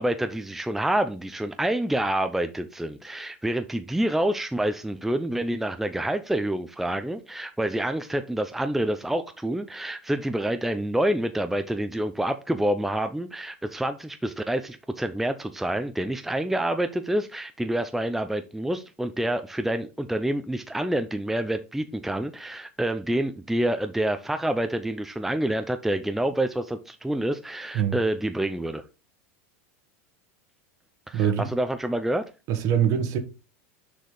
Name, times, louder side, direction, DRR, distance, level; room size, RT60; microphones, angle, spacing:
voice 1, 0.0-28.8 31.1-32.3, right 1 dB, 5° right, 0.5 m, -27 dB
voice 2, 31.1-31.5 32.5-33.2, right 9 dB, 50° right, 1.3 m, -23 dB
6.5 x 5.0 x 3.8 m
supercardioid pair, 110°, 7 cm